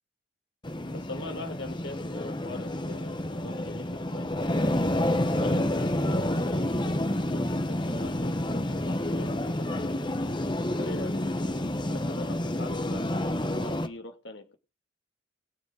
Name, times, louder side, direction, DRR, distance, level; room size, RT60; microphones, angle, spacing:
sound 1, 0.6-13.9, left 1 dB, 20° left, 1.0 m, -29 dB
voice 1, 0.9-4.8 5.3-9.9 10.6-14.5, left 2 dB, 65° left, 4 dB, 2.8 m, -42 dB
21.5 x 7.3 x 4.9 m, 0.31 s
head